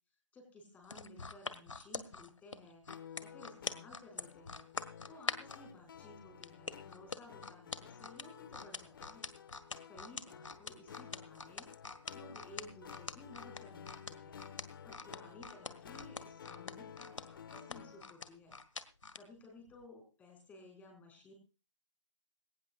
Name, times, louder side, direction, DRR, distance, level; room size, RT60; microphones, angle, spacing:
voice 1, 0.3-2.9 3.2-4.7 5.1-9.3 9.9-11.7 12.1-14.4 14.8-18.6 19.1-21.3, left 2 dB, 10° left, 2 dB, 5.0 m, -56 dB
sound 1, 0.8-5.6 6.4-19.2 19.7-19.8, left 4 dB, 80° left, 1.6 m, -43 dB
sound 2, 2.9-18.1, left 8 dB, 45° left, 1.4 m, -53 dB
19.0 x 18.0 x 2.4 m, 0.33 s
figure-of-eight pair, 150°, 16 cm